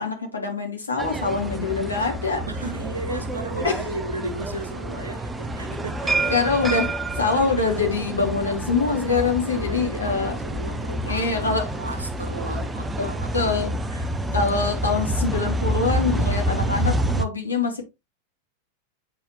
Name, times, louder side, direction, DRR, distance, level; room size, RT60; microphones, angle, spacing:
voice 1, 0.0-2.5 3.6-3.8 6.3-10.4 11.1-11.7 13.0-13.7 14.3-17.8, left 4 dB, 80° left, 2.0 m, -24 dB
sound 1, 1.0-17.3, right 1 dB, 10° right, 0.6 m, -28 dB
voice 2, 2.5-6.3 9.4-13.6 13.9-14.5, right 2 dB, 75° right, 1.3 m, -35 dB
8.4 x 4.3 x 3.0 m
figure-of-eight pair, 90°, 0 cm